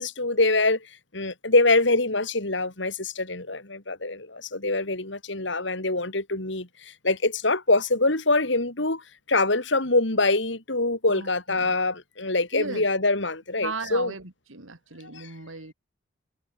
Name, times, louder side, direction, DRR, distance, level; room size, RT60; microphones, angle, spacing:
voice 1, 0.0-9.0 9.3-14.1 15.1-15.3, left 2 dB, 65° left, 3.4 m, -24 dB
voice 2, 12.5-12.9 13.6-15.7, right 3 dB, 85° right, 2.4 m, -36 dB
head